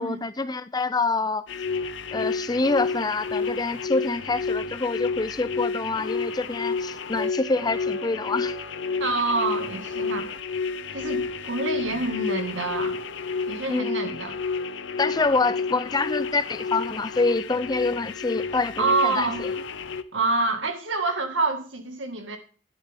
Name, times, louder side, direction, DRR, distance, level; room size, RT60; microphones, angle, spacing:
voice 1, 0.0-1.5 2.1-8.6 13.7-14.1 15.0-19.5, left 3 dB, 20° left, 0.5 m, -26 dB
sound 1, 1.5-20.0, left 4 dB, 75° left, 0.7 m, -30 dB
sound 2, 7.2-11.8, left 1 dB, 60° right, 5.9 m, -46 dB
voice 2, 9.0-10.3 10.9-13.0 13.5-14.4 18.8-19.4 20.1-22.4, right 3 dB, 80° right, 2.1 m, -27 dB
11.5 x 11.0 x 3.7 m
head